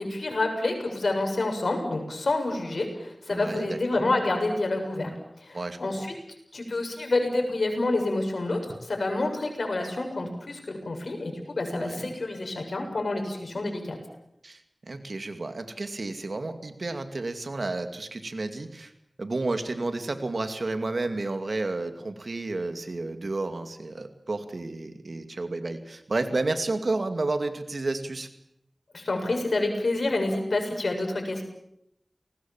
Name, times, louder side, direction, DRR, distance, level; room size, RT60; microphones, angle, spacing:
voice 1, 0.0-5.1 5.4-6.1 6.5-14.0 28.9-31.4, left 2 dB, 80° left, 4 dB, 6.9 m, -28 dB
voice 2, 3.3-4.1 5.5-5.8 11.7-12.1 14.4-18.9 19.2-28.3, right 2 dB, 70° right, 8 dB, 2.6 m, -31 dB
29.5 x 20.0 x 7.5 m, 0.78 s
wide cardioid pair, 50°, 0 cm